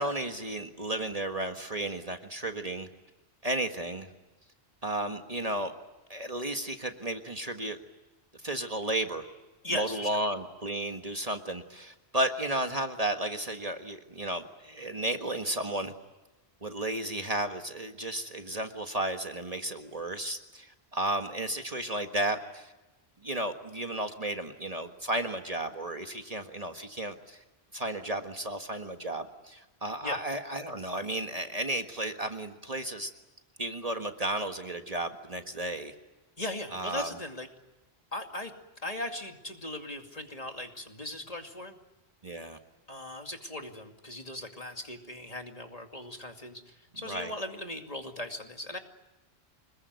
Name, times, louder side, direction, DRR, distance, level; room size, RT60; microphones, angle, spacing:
voice 1, 0.0-2.9 3.4-4.1 4.8-5.7 6.1-7.8 8.4-9.3 9.7-15.9 16.6-22.7 23.2-27.4 27.7-33.1 33.6-35.9 36.7-37.1 42.2-42.6 47.0-47.3, right 1 dB, 35° right, 6 dB, 1.7 m, -33 dB
voice 2, 9.6-10.2 30.0-30.2 36.4-37.5 38.1-38.5 38.8-41.8 42.9-48.8, left 1 dB, 35° left, 4 dB, 2.6 m, -38 dB
26.0 x 21.5 x 9.5 m, 1.1 s
omnidirectional pair, 1.1 m